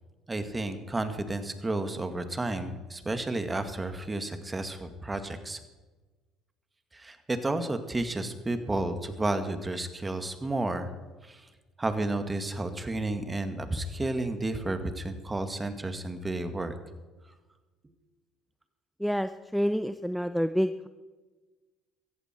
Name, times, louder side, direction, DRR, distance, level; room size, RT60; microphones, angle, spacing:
voice 1, 0.3-5.6 6.9-10.9 11.2-11.5 11.8-16.7, right 2 dB, 20° right, 8 dB, 2.1 m, -32 dB
voice 2, 19.0-20.9, equal, ahead, 10 dB, 0.7 m, -28 dB
17.0 x 14.5 x 4.6 m, 1.2 s
hypercardioid pair, 70°, 0 cm